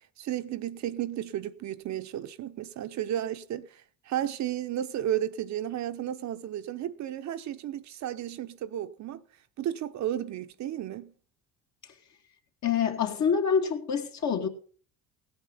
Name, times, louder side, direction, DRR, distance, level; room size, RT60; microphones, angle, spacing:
voice 1, 0.2-9.2 9.6-11.1, right 11 dB, 55° right, 0.9 m, -33 dB
voice 2, 12.6-14.5, left 7 dB, 55° left, 2.4 m, -26 dB
16.5 x 8.8 x 5.5 m
supercardioid pair, 85°, 33 cm